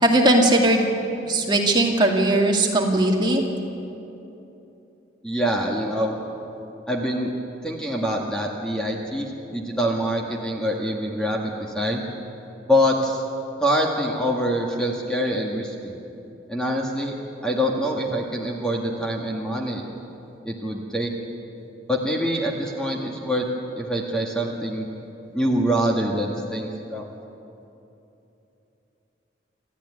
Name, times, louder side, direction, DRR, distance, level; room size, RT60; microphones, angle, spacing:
voice 1, 0.0-0.8 1.2-3.4, right 1 dB, 25° right, 0 dB, 2.3 m, -19 dB
voice 2, 5.2-6.2 6.9-7.3 7.6-12.0 12.7-13.2 13.6-16.0 16.5-17.1 17.4-19.8 20.5-21.1 21.9-23.5 23.8-24.9 25.3-27.0, equal, 5° left, -1 dB, 1.9 m, -25 dB
27.0 x 14.0 x 9.7 m, 2.9 s
head